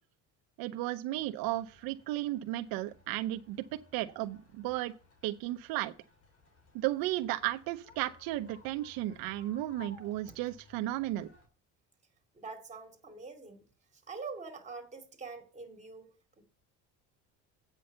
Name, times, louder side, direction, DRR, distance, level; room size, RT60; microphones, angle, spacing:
voice 1, 0.6-3.6 3.9-4.9 5.2-5.9 6.7-11.3, right 15 dB, 80° right, 0.8 m, -34 dB
sound 1, 1.1-11.5, left 4 dB, 40° left, 3.2 m, -59 dB
voice 2, 12.3-13.6 14.1-16.4, right 4 dB, 20° right, 2.8 m, -45 dB
8.8 x 6.2 x 6.7 m
cardioid pair, 140°, 35 cm